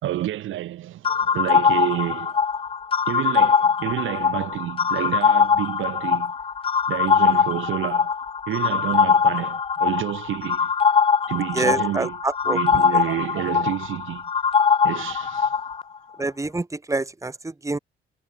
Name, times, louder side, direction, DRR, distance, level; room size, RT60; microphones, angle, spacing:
voice 1, 0.0-2.5 3.1-6.3 6.9-8.1 8.5-10.7 11.3-12.2 12.5-14.3 14.8-15.6, right 13 dB, 80° right, 4.5 m, -29 dB
sound 1, 1.0-15.8, left 6 dB, 30° left, 0.5 m, -22 dB
voice 2, 11.5-12.6 12.9-13.0 16.2-17.8, right 2 dB, 15° right, 2.5 m, -27 dB
cardioid pair, 90°, 20 cm